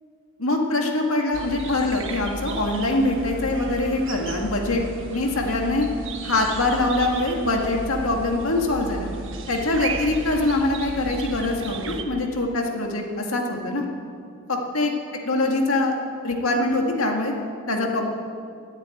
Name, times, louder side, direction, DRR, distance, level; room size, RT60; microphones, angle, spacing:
voice 1, 0.4-4.8 5.1-5.9 6.2-9.1 9.5-13.8 14.5-14.9 15.2-15.9 16.2-17.3 17.7-18.0, left 2 dB, 80° left, 1 dB, 1.9 m, -23 dB
sound 1, 1.3-12.0, right 3 dB, 65° right, 1.2 m, -34 dB
13.0 x 8.2 x 9.0 m, 2.3 s
head